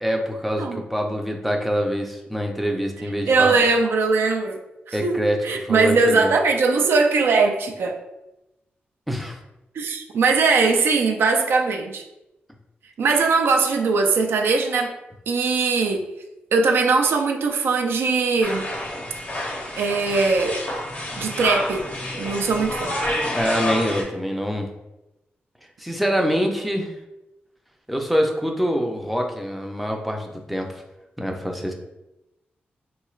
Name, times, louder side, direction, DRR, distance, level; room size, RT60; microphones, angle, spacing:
voice 1, 0.0-3.6 4.9-6.3 9.1-9.4 23.2-24.7 25.8-27.0 27.9-30.8 31.2-31.7, equal, ahead, 2 dB, 0.4 m, -25 dB
voice 2, 3.3-4.6 4.9-8.0 9.7-12.0 13.0-14.9 15.3-16.0 16.5-18.7 19.8-20.6 21.2-21.8 22.2-22.9, right 4 dB, 85° right, 3 dB, 0.4 m, -20 dB
sound 1, 18.4-24.0, left 1 dB, 45° left, 0.7 m, -28 dB
3.7 x 3.0 x 2.4 m, 0.95 s
wide cardioid pair, 120°, 4 cm